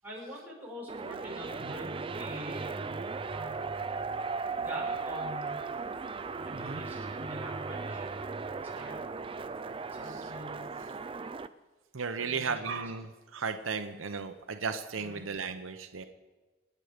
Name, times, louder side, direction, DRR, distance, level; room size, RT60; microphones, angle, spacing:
voice 1, 0.0-2.7 3.3-3.7 4.6-5.6 6.3-8.1 8.6-9.0 9.9-10.7 12.2-12.5 15.0-15.2, equal, 10° right, -6 dB, 6.0 m, -44 dB
sound 1, 0.9-11.5, right 4 dB, 25° right, 0.4 m, -37 dB
voice 2, 11.9-16.0, right 5 dB, 75° right, 7 dB, 0.9 m, -35 dB
28.0 x 9.7 x 5.1 m, 1.2 s
head